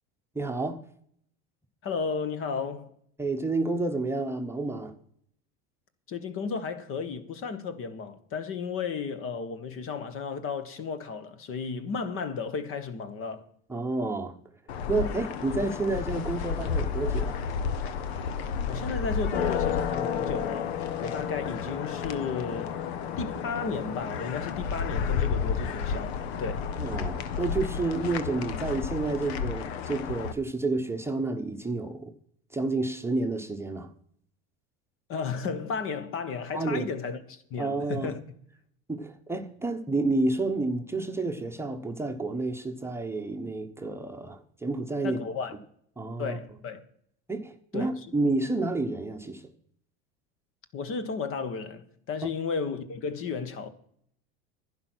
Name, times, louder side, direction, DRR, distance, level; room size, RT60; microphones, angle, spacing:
voice 1, 0.3-0.8 3.2-4.9 13.7-14.4 14.9-17.4 26.8-32.1 32.5-33.9 36.5-36.9 37.6-38.1 38.9-45.2 46.0-46.4 47.3-49.4 52.2-52.3, right 2 dB, 10° right, 1.0 m, -30 dB
voice 2, 1.8-3.0 6.1-13.4 18.7-20.7 21.0-22.8 23.2-26.7 35.1-38.2 45.0-45.5 46.2-46.8 47.7-47.9 50.7-53.7, left 5 dB, 45° left, 1.4 m, -34 dB
sound 1, 14.7-30.3, left 6 dB, 85° left, 1.1 m, -31 dB
11.0 x 9.7 x 6.2 m
supercardioid pair, 110°, 31 cm